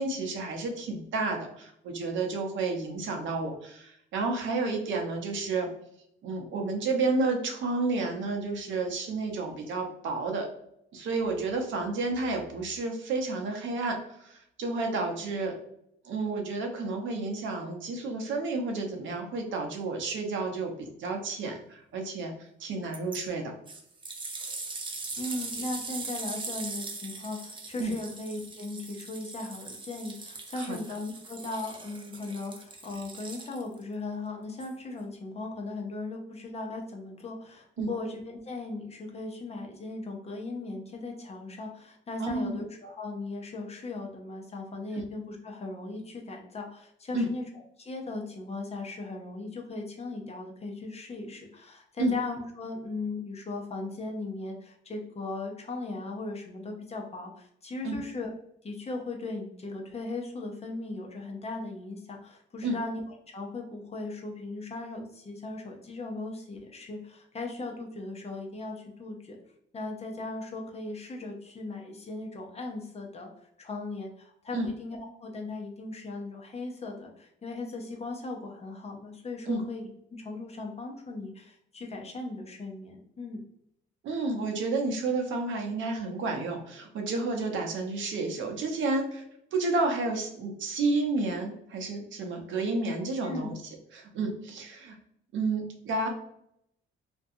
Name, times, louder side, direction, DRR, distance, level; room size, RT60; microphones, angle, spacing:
voice 1, 0.0-5.7 6.2-10.5 10.9-15.6 16.0-23.5 27.8-27.9 30.6-30.8 37.8-37.9 42.2-42.6 44.9-45.0 47.1-47.3 52.0-52.1 57.8-58.0 62.6-62.8 74.5-74.7 79.5-79.6 84.0-89.2 89.5-93.6 93.9-95.0 95.3-96.1, right 3 dB, 75° right, 3 dB, 0.7 m, -31 dB
sound 1, 22.9-23.2 23.7-33.8 34.6-34.7, right 3 dB, 25° right, 0.5 m, -40 dB
voice 2, 25.2-47.5 47.8-58.3 58.6-69.4 69.7-73.3 73.6-83.4 93.2-93.5, left 3 dB, 30° left, 1 dB, 0.7 m, -38 dB
2.5 x 2.2 x 2.7 m, 0.72 s
cardioid pair, 90°, 20 cm